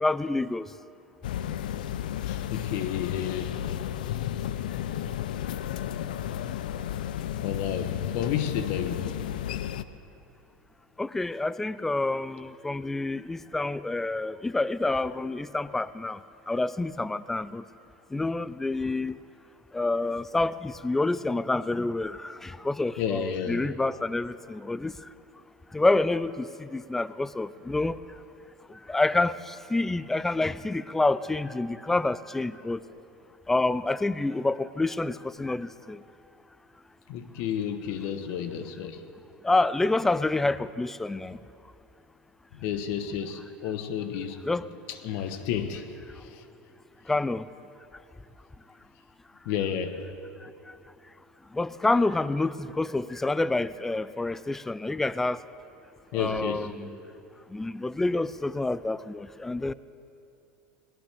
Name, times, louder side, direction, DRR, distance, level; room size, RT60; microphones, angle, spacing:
voice 1, 0.0-0.7 11.0-16.2 16.5-17.6 18.1-19.2 19.7-24.9 25.7-28.0 28.9-32.8 33.5-36.0 39.4-41.4 44.5-44.7 47.1-47.5 51.5-55.4 56.1-57.0 57.5-59.7, left 2 dB, 10° left, 17 dB, 0.4 m, -28 dB
sound 1, 1.2-9.8, left 11 dB, 85° left, 0.5 m, -32 dB
voice 2, 2.3-3.6 7.4-9.0 23.0-23.7 37.1-39.0 42.5-44.4 44.9-45.9 46.1-46.4 49.4-50.0 56.1-56.7, left 8 dB, 60° left, 9 dB, 1.1 m, -31 dB
19.0 x 18.0 x 3.5 m, 2.7 s
supercardioid pair, 115°, 4 cm